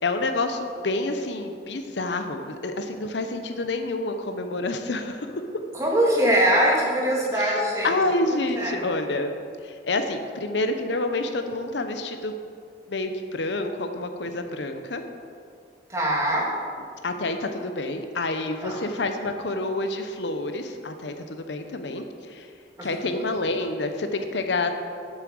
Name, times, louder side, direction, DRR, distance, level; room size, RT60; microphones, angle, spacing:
voice 1, 0.0-5.4 7.3-7.6 7.8-9.3 9.6-12.3 12.9-15.0 17.0-22.5 22.8-24.7, left 2 dB, 85° left, 7 dB, 0.8 m, -28 dB
voice 2, 5.7-8.0 8.5-8.8 15.9-16.5 18.6-18.8 22.8-22.9, equal, 15° right, -4 dB, 1.9 m, -22 dB
8.3 x 7.4 x 6.4 m, 2.3 s
head